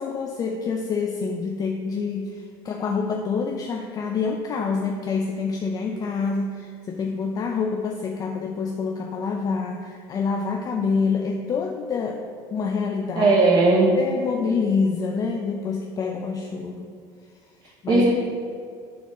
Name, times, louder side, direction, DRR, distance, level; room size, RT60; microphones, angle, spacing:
voice 1, 0.0-13.3 14.0-16.9 17.6-18.1, left 5 dB, 35° left, 3 dB, 0.5 m, -27 dB
voice 2, 13.2-13.9 17.9-18.1, right 3 dB, 40° right, -3 dB, 1.0 m, -17 dB
6.9 x 4.1 x 6.2 m, 2.3 s
supercardioid pair, 105°, 11 cm